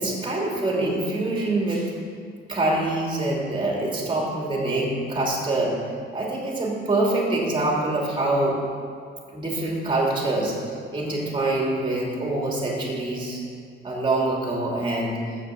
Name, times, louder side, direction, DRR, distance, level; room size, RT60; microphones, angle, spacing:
voice 1, 0.0-1.9 2.5-5.7 6.1-8.6 9.3-13.4 13.8-15.2, right 2 dB, 25° right, -3 dB, 2.9 m, -25 dB
7.6 x 6.8 x 7.8 m, 2.3 s
cardioid pair, 90°, 20 cm